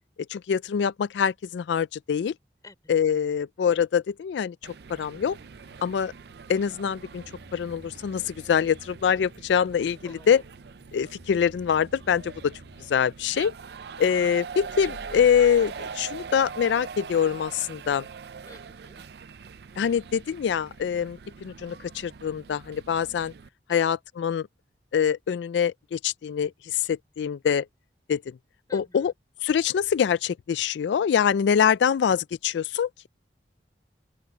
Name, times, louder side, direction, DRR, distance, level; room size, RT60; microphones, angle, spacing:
voice 1, 0.3-2.3 2.9-5.4 5.8-6.1 6.5-7.2 7.5-10.0 10.3-10.4 10.9-12.5 12.9-13.5 14.0-18.1 19.8-23.3 23.7-24.5 24.9-27.7 28.1-28.2 28.7-29.1 29.4-33.1, left 7 dB, 90° left, 0.3 m, -24 dB
sound 1, 4.6-23.5, right 6 dB, 65° right, 0.4 m, -42 dB
sound 2, 5.2-13.3, equal, 70° left, 3.3 m, -55 dB
voice 2, 10.0-10.4 14.0-14.1 18.5-19.0 23.7-23.8 28.7-29.1, left 2 dB, 20° left, 4.4 m, -49 dB
sound 3, 14.3-16.9, equal, 35° right, 2.7 m, -48 dB
open air
head